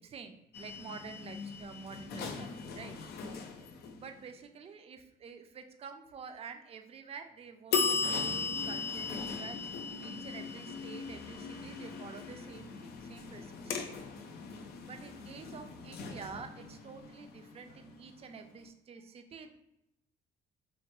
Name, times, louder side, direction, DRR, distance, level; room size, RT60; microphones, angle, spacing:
voice 1, 0.0-3.0 3.9-13.9 14.8-19.5, right 6 dB, 35° right, 7 dB, 0.4 m, -48 dB
sound 1, 0.5-4.3 7.7-18.4, left 4 dB, 70° left, 0.5 m, -38 dB
4.7 x 2.2 x 3.0 m, 0.83 s
cardioid pair, 110°, 17 cm